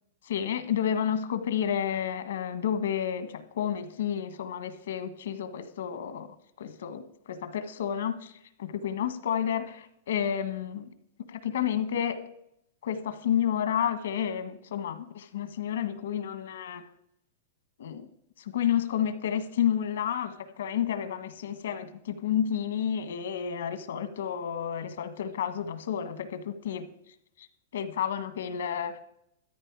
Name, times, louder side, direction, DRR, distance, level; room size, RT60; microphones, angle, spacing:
voice 1, 0.2-6.3 6.6-10.9 11.3-12.2 12.8-16.8 17.8-18.1 18.4-26.9 27.4-27.5 27.7-29.0, left 9 dB, 80° left, 10 dB, 1.5 m, -30 dB
13.5 x 10.5 x 4.8 m, 0.76 s
supercardioid pair, 160°, 0 cm